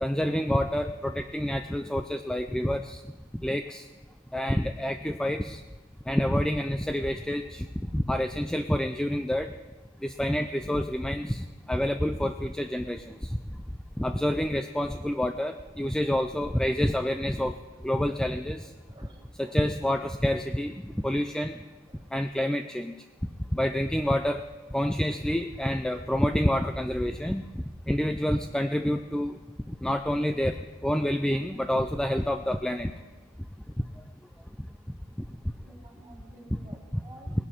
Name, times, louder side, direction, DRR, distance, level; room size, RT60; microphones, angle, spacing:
voice 1, 0.0-3.0 3.4-3.8 4.3-5.6 6.1-7.7 7.9-9.5 10.0-13.0 14.0-17.5 17.8-18.6 19.4-21.5 22.1-22.9 23.5-24.4 24.7-27.5 27.9-29.3 29.7-30.6 30.8-32.9, equal, 5° left, 7 dB, 0.3 m, -28 dB
voice 2, 18.9-19.6 21.9-22.0 35.6-37.3, right 2 dB, 20° right, 2 dB, 1.7 m, -52 dB
19.5 x 11.0 x 4.4 m, 1.3 s
head